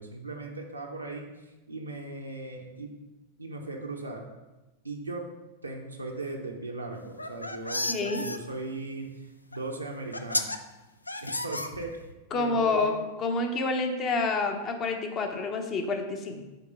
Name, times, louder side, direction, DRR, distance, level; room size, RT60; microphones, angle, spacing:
voice 1, 0.0-2.9 3.4-4.3 4.8-5.3 5.6-10.5 11.2-12.9 16.3-16.4, right 2 dB, 85° right, 0 dB, 0.8 m, -38 dB
sound 1, 7.1-8.4 9.5-9.6 10.1-10.6 11.1-12.1, left 2 dB, 85° left, 0.4 m, -32 dB
voice 2, 7.9-8.2 12.3-12.9 13.2-16.4, left 3 dB, 30° left, 4 dB, 1.0 m, -28 dB
8.0 x 3.7 x 4.9 m, 1.1 s
figure-of-eight pair, 90°, 0 cm